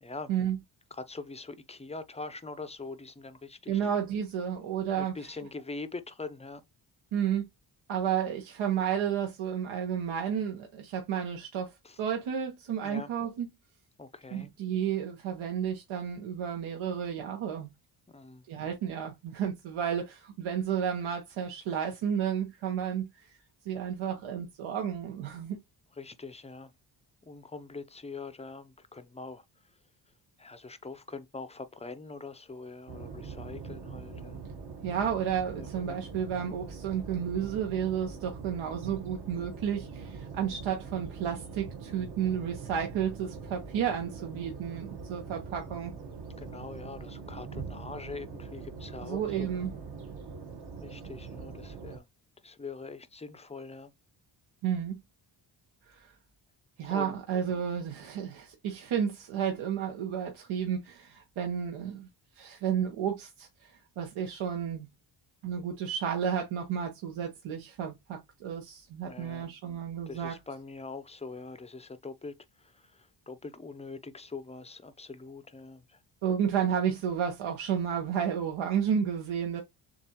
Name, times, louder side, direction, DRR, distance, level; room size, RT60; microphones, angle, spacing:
voice 1, 0.9-3.8 5.0-6.6 11.8-12.0 12.8-13.1 14.0-14.5 18.1-18.4 26.0-26.7 27.2-29.4 30.4-34.4 35.6-36.0 46.4-49.5 50.8-52.1 52.4-53.9 56.9-57.2 69.0-69.5 70.1-72.4 72.6-76.0, left 3 dB, 15° left, 0.5 m, -43 dB
voice 2, 3.7-5.1 7.1-7.5 7.9-11.7 12.0-13.5 14.3-17.7 18.5-23.3 23.6-25.6 34.8-45.9 49.0-49.7 54.6-55.0 55.9-56.1 56.8-62.1 62.4-63.5 64.0-64.9 65.4-70.4 76.2-79.6, right 8 dB, 80° right, 1.3 m, -32 dB
sound 1, 32.9-52.0, right 5 dB, 50° right, 1.3 m, -43 dB
7.0 x 2.5 x 2.9 m
cardioid pair, 110°, 48 cm